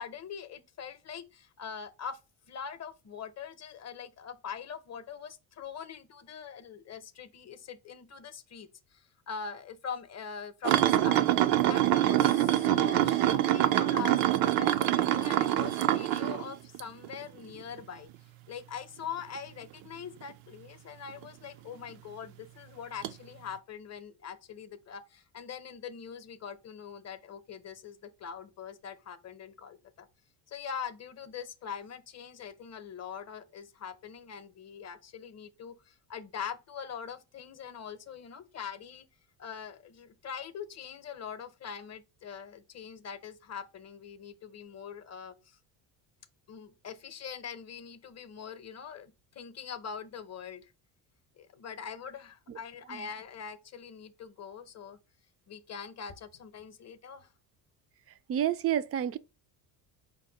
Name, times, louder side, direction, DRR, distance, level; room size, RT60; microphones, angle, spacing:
voice 1, 0.0-2.2 2.5-11.3 11.6-18.1 18.5-30.1 30.5-39.1 39.4-45.6 46.5-50.7 51.4-55.0 55.5-57.3, left 7 dB, 35° left, 0.7 m, -43 dB
sound 1, 10.6-17.2 17.6-17.8 21.2-21.3 23.0-23.1, right 13 dB, 85° right, 0.6 m, -25 dB
voice 2, 58.3-59.2, right 10 dB, 35° right, 0.4 m, -29 dB
5.1 x 2.1 x 4.0 m
cardioid pair, 95°, 47 cm